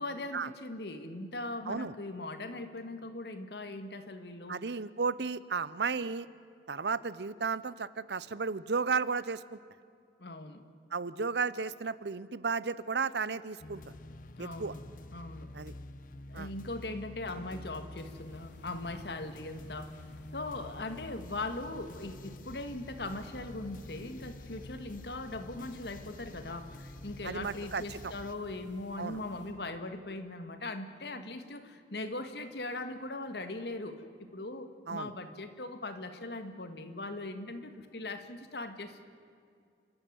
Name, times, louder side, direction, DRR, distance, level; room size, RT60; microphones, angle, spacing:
voice 1, 0.0-4.6 10.2-10.6 14.4-14.8 15.1-15.5 16.3-20.0 20.3-39.0, left 2 dB, 70° left, 9 dB, 1.8 m, -40 dB
voice 2, 4.5-6.3 6.7-9.6 10.9-13.8 14.4-14.7 15.5-15.7 16.3-16.5 27.2-28.1 29.0-29.2 34.9-35.1, right 5 dB, 70° right, 18 dB, 0.7 m, -34 dB
sound 1, 13.6-28.4, left 1 dB, 50° left, 0.8 m, -48 dB
sound 2, 18.0-29.5, left 1 dB, 85° left, 3.4 m, -57 dB
29.0 x 13.0 x 9.5 m, 2.3 s
head